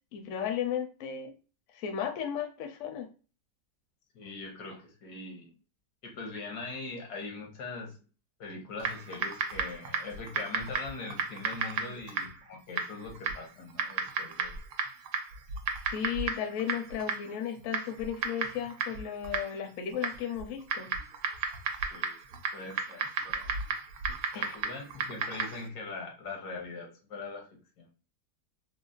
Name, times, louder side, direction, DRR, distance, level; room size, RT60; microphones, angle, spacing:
voice 1, 0.1-1.3 1.7-3.1 11.8-12.0 15.9-20.9 24.3-24.6, left 8 dB, 65° left, 4 dB, 0.8 m, -35 dB
voice 2, 4.1-5.5 6.0-7.9 8.4-14.5 21.9-22.2 22.5-23.6 24.3-27.5 27.8-27.9, left 3 dB, 85° left, 1 dB, 1.4 m, -41 dB
Typing, 8.8-25.7, right 5 dB, 80° right, 1.1 m, -35 dB
3.8 x 2.0 x 2.4 m, 0.36 s
omnidirectional pair, 1.7 m